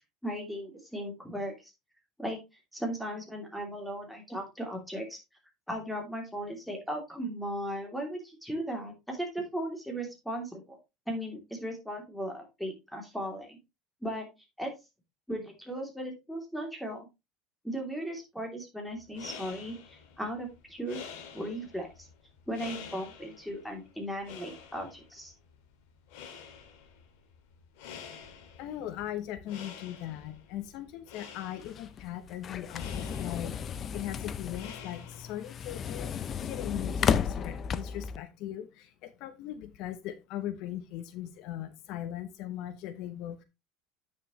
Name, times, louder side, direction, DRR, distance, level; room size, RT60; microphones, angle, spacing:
voice 1, 0.2-1.7 2.2-2.4 2.7-5.2 5.7-10.8 11.1-13.6 14.0-14.3 14.6-14.7 15.3-17.1 17.6-21.0 21.3-22.1 22.5-25.3, equal, ahead, 2 dB, 2.9 m, -37 dB
sound 1, 18.9-35.6, left 7 dB, 80° left, 2.0 m, -49 dB
voice 2, 28.6-36.1 36.4-43.4, left 12 dB, 60° left, 11 dB, 0.9 m, -39 dB
sound 2, 31.6-38.2, left 7 dB, 35° left, 0.5 m, -33 dB
9.2 x 6.5 x 3.1 m, 0.24 s
cardioid pair, 135°, 0 cm